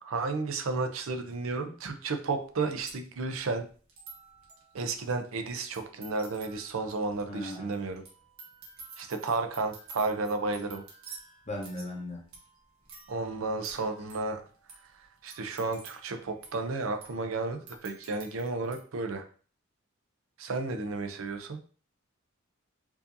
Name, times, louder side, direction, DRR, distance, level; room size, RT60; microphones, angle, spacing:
voice 1, 0.0-3.7 4.7-8.0 9.0-10.8 13.1-14.4 15.2-19.2 20.4-21.6, right 3 dB, 70° right, 0.6 m, -32 dB
sound 1, 1.3-1.4 2.2-2.3 2.4-18.8, right 4 dB, 85° right, 1.2 m, -51 dB
voice 2, 7.3-7.7 11.5-12.3, left 1 dB, 30° left, 0.9 m, -37 dB
4.6 x 2.7 x 2.6 m
head